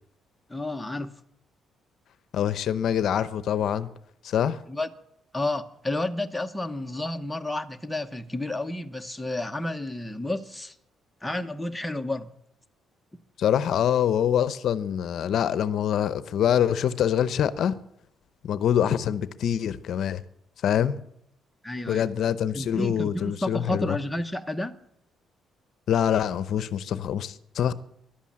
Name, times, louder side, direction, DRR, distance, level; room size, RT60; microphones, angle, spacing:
voice 1, 0.5-1.1 4.7-4.9 5.3-10.7 11.2-12.3 21.6-22.0 22.5-24.8, left 1 dB, 5° left, 0.9 m, -31 dB
voice 2, 2.3-3.9 4.2-4.6 13.4-17.8 18.4-20.2 20.6-21.0 21.9-24.0 25.9-27.7, left 9 dB, 60° left, 0.6 m, -25 dB
14.5 x 11.5 x 7.5 m
cardioid pair, 130°, 0 cm